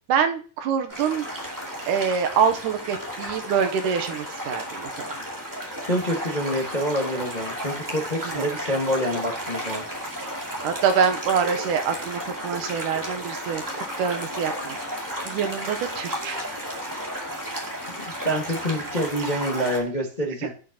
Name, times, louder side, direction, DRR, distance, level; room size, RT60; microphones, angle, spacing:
voice 1, 0.1-1.3 1.9-5.2 8.2-8.5 10.6-14.8 15.2-16.5 20.4-20.5, right 7 dB, 80° right, 6 dB, 2.4 m, -25 dB
sound 1, 0.9-19.8, equal, 5° right, 1.9 m, -33 dB
voice 2, 5.9-9.8 18.0-20.5, equal, 25° left, -1 dB, 1.0 m, -27 dB
17.0 x 6.3 x 2.9 m, 0.38 s
omnidirectional pair, 3.7 m